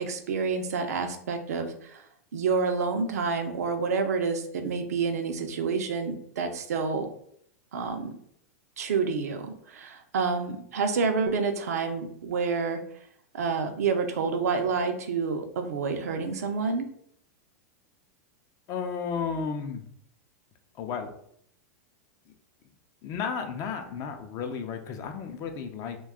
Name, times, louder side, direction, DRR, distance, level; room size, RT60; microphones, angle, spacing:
voice 1, 0.0-2.0 2.3-7.1 7.7-8.2 8.8-12.8 13.3-16.9, right 5 dB, 75° right, 6 dB, 0.5 m, -28 dB
voice 2, 18.7-19.9 20.8-21.1 23.0-26.0, left 6 dB, 40° left, 6 dB, 0.5 m, -33 dB
2.5 x 2.2 x 3.6 m, 0.67 s
hypercardioid pair, 110°, 8 cm